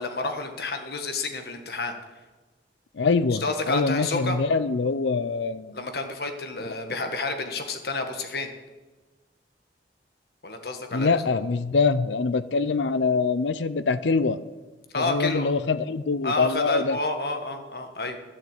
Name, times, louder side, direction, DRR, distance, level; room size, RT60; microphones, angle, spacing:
voice 1, 0.0-1.9 3.3-4.4 5.7-8.5 10.4-11.2 14.9-15.5 16.2-18.2, left 3 dB, 60° left, 6 dB, 1.4 m, -30 dB
voice 2, 2.9-5.7 10.9-14.4 15.0-17.0, left 4 dB, 85° left, 14 dB, 0.6 m, -24 dB
11.5 x 7.4 x 8.2 m, 1.2 s
head